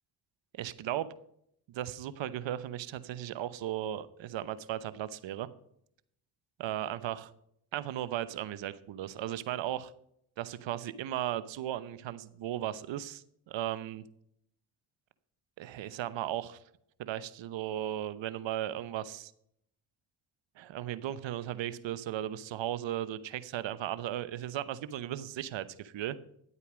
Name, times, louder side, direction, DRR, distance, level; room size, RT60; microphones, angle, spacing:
voice 1, 0.5-1.1 1.7-5.5 6.6-7.3 7.7-9.9 10.4-14.0 15.6-16.6 17.0-19.3 20.6-26.2, right 12 dB, 60° right, 15 dB, 0.9 m, -36 dB
11.0 x 8.3 x 5.0 m, 0.72 s
hypercardioid pair, 50°, 49 cm